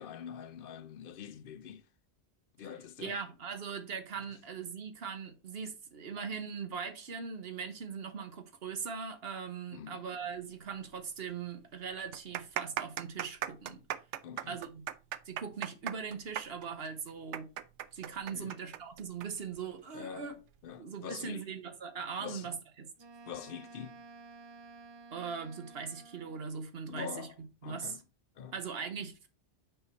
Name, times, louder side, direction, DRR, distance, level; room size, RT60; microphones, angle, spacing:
voice 1, 0.0-1.8 2.6-3.2 9.7-10.0 14.2-14.6 18.3-18.5 19.9-20.3 20.6-21.5 22.2-22.5 23.3-24.0 26.9-27.3 27.6-28.0 28.4-28.5, left 8 dB, 60° left, 0.7 m, -44 dB
voice 2, 3.0-13.8 14.5-14.9 15.2-17.5 17.9-20.4 20.8-22.9 25.1-28.0 28.5-29.3, right 6 dB, 60° right, 1.1 m, -40 dB
sound 1, 10.9-11.0 11.3-11.4 12.0-19.3 19.5-19.6 20.4-20.7, right 11 dB, 85° right, 0.9 m, -38 dB
Wind instrument woodwind instrument, 23.0-26.5, right 4 dB, 35° right, 0.4 m, -53 dB
5.5 x 4.4 x 4.4 m
omnidirectional pair, 1.2 m